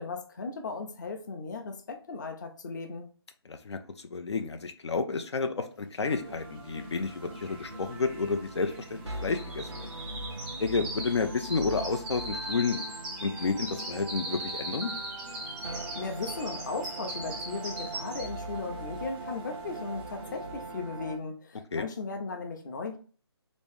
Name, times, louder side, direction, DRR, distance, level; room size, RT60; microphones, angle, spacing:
voice 1, 0.0-3.1 15.6-23.0, left 4 dB, 45° left, 5 dB, 0.7 m, -37 dB
voice 2, 3.5-9.9 10.6-12.8 13.2-14.9 21.7-21.9, left 4 dB, 80° left, 7 dB, 0.5 m, -31 dB
sound 1, 6.0-21.2, right 2 dB, 85° right, 0.7 m, -41 dB
sound 2, 6.8-6.9 7.1-18.6 19.0-19.3 19.7-19.8, right 1 dB, 5° right, 0.3 m, -40 dB
3.0 x 2.6 x 3.4 m, 0.40 s
hypercardioid pair, 160°, 14 cm